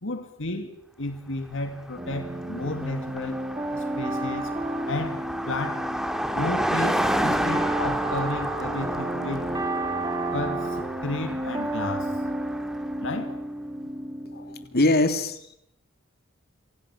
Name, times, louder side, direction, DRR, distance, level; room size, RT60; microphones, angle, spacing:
voice 1, 0.0-3.4 3.7-4.5 4.9-5.9 6.3-9.5 10.3-12.2 13.0-13.3, left 2 dB, 65° left, 7 dB, 2.4 m, -32 dB
Car passing by, 1.8-1.9 2.1-13.1, equal, ahead, 2.2 m, -31 dB
sound 1, 2.0-14.7, right 1 dB, 20° right, 2.8 m, -32 dB
voice 2, 14.3-15.5, left 2 dB, 50° left, 8 dB, 2.8 m, -23 dB
28.0 x 27.0 x 7.2 m, 0.74 s
head